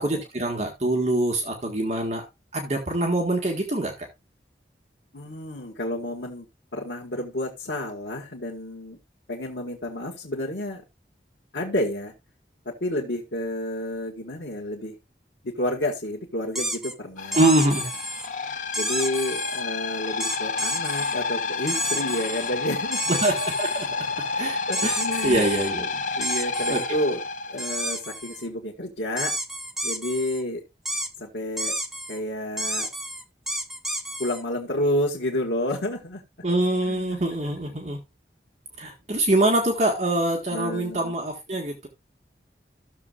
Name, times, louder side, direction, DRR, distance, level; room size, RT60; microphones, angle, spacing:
voice 1, 0.0-2.2 2.5-4.1 17.3-17.9 23.2-23.9 24.4-24.9 25.2-25.9 26.7-26.8 36.4-38.0 38.8-41.9, right 1 dB, 40° right, 1 dB, 1.8 m, -24 dB
voice 2, 5.1-9.0 9.3-10.8 11.5-12.1 12.7-15.0 15.4-17.5 18.4-23.2 24.7-25.4 26.2-27.2 27.5-29.3 29.8-30.6 31.2-31.7 32.1-32.9 34.2-36.2 36.9-37.3 40.5-41.1, left 1 dB, 80° left, -3 dB, 1.9 m, -30 dB
sound 1, 16.5-16.9 17.3-18.3 18.7-19.6 20.2-21.1 21.7-22.5 22.9-23.9 24.7-25.7 26.2-26.9 27.6-28.5 29.2-30.4 30.9-31.1 31.6-32.2 32.6-34.4, right 1 dB, ahead, 0.7 m, -31 dB
sound 2, 17.2-28.0, left 4 dB, 45° left, 0.6 m, -30 dB
14.5 x 7.0 x 2.5 m, 0.23 s
head